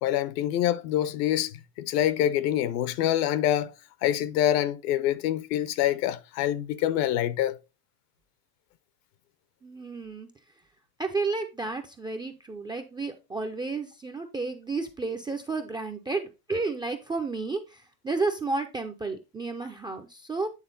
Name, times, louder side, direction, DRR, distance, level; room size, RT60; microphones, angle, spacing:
voice 1, 0.0-1.5 1.8-3.7 4.0-7.6, left 12 dB, 70° left, 0.8 m, -26 dB
voice 2, 9.6-10.3 11.0-20.5, right 3 dB, 10° right, 0.3 m, -32 dB
8.9 x 3.6 x 3.9 m
supercardioid pair, 110°, 49 cm